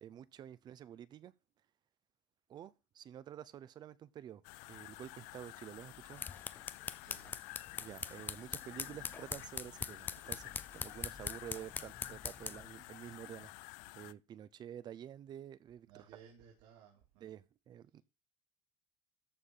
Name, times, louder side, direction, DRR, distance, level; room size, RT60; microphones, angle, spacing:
voice 1, 0.0-1.3 2.5-4.4 4.7-6.2 7.8-15.9 17.2-18.0, right 10 dB, 35° right, 0.7 m, -50 dB
sound 1, 4.4-14.1, left 23 dB, 80° left, 0.4 m, -51 dB
sound 2, 5.9-12.7, left 5 dB, 15° left, 0.5 m, -43 dB
voice 2, 7.0-7.4 15.8-17.4 17.9-18.0, right 8 dB, 75° right, 3.8 m, -60 dB
13.5 x 4.8 x 5.6 m
cardioid pair, 150°, 12 cm